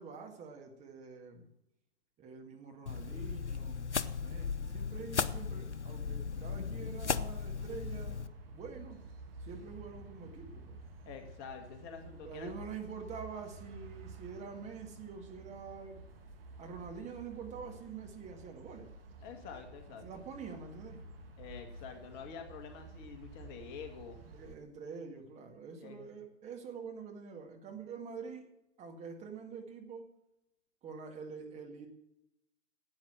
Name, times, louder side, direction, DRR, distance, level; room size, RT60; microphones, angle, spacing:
voice 1, 0.0-1.5 2.2-3.9 4.2-8.2 8.5-9.0 9.4-10.8 12.2-16.0 16.6-18.9 20.0-21.0 24.3-28.5 28.8-30.1 30.8-31.9, right 5 dB, 20° right, 2 dB, 2.0 m, -46 dB
sound 1, 2.9-8.3, left 6 dB, 80° left, 0.8 m, -36 dB
sound 2, 7.5-24.6, right 2 dB, 55° right, 2.3 m, -51 dB
voice 2, 11.0-12.5 19.2-20.2 21.4-24.2 25.8-26.0, left 6 dB, 30° left, 6 dB, 1.8 m, -47 dB
12.0 x 8.7 x 7.6 m, 0.85 s
figure-of-eight pair, 115°, 34 cm